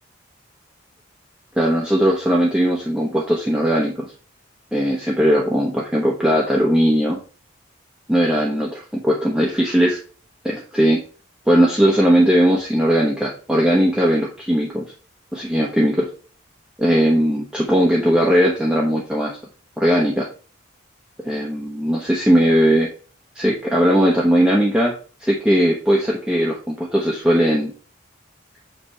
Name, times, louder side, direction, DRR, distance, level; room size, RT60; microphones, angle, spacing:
voice 1, 1.6-4.1 4.7-7.2 8.1-10.0 10.4-11.0 11.5-14.8 15.3-16.1 16.8-19.4 19.8-20.3 21.2-22.9 23.3-24.9 25.2-27.7, equal, 5° right, -3 dB, 0.9 m, -18 dB
7.6 x 3.3 x 5.4 m, 0.39 s
head